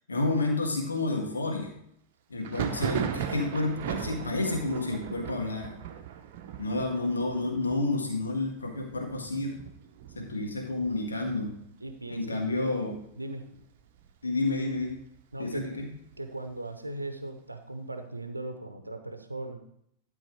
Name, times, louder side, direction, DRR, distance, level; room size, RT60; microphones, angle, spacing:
voice 1, 0.1-1.7 2.3-5.7 6.6-9.6 10.2-11.5 12.1-13.0 14.2-15.0 15.4-15.9, left 2 dB, 75° left, 1 dB, 1.7 m, -30 dB
Thunder, 2.4-11.9 12.2-12.9 13.1-14.1 14.5-16.2, right 9 dB, 50° right, 0.8 m, -38 dB
voice 2, 11.8-12.8 13.2-13.4 15.3-15.8 16.2-19.6, right 2 dB, 85° right, 7 dB, 0.8 m, -38 dB
12.0 x 4.6 x 4.6 m, 0.73 s
figure-of-eight pair, 90°, 0 cm